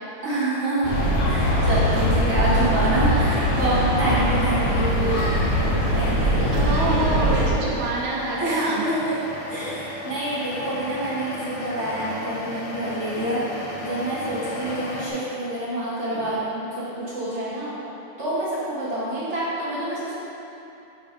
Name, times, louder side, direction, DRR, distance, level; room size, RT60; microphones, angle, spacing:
voice 1, 0.2-0.9 1.2-5.2 5.9-6.6 8.4-9.2 9.5-13.4 13.8-17.7 18.2-20.2, right 1 dB, 30° right, -11 dB, 1.5 m, -27 dB
sound 1, 0.8-7.5, equal, 60° left, 1.9 m, -21 dB
sound 2, 1.4-15.1, left 1 dB, 80° left, 2.4 m, -36 dB
voice 2, 6.5-8.8 16.1-16.2, right 3 dB, 70° right, -4 dB, 2.4 m, -26 dB
7.0 x 4.7 x 5.2 m, 3.0 s
omnidirectional pair, 3.5 m